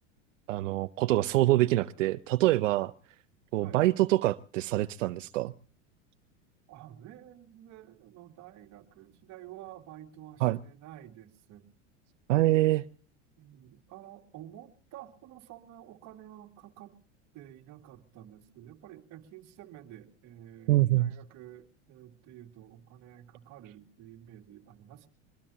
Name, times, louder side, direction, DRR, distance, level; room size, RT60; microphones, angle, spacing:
voice 1, 0.5-2.9 3.5-5.5 10.4-10.6 12.3-12.8 20.7-21.1, right 16 dB, 85° right, 0.7 m, -25 dB
voice 2, 6.7-11.6 13.4-17.0 17.3-25.1, right 12 dB, 50° right, 2.4 m, -50 dB
23.5 x 21.0 x 2.8 m
hypercardioid pair, 105°, 37 cm